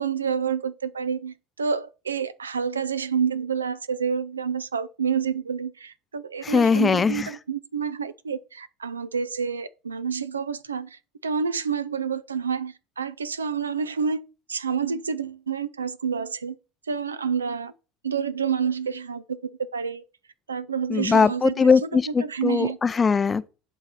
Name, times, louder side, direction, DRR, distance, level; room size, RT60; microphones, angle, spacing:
voice 1, 0.0-14.2 14.5-16.6 16.9-17.7 18.0-20.0 20.5-21.7 22.1-22.8, right 6 dB, 80° right, 0.4 m, -28 dB
voice 2, 6.4-7.3 20.9-23.5, left 5 dB, 25° left, 0.5 m, -20 dB
11.0 x 3.9 x 4.2 m
figure-of-eight pair, 70°, 0 cm